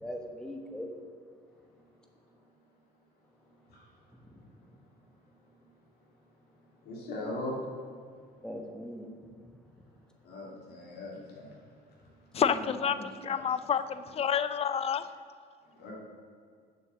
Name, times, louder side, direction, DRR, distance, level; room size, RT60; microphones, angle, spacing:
voice 1, 0.0-0.9 8.4-9.1 12.4-13.4, equal, 5° left, 3 dB, 1.2 m, -41 dB
voice 2, 6.9-7.6 10.3-11.5 15.8-15.9, left 2 dB, 70° left, -3 dB, 2.3 m, -39 dB
voice 3, 12.3-12.9 13.2-15.0, left 8 dB, 35° left, 12 dB, 0.5 m, -28 dB
6.9 x 6.5 x 7.1 m, 2.1 s
cardioid pair, 110°, 17 cm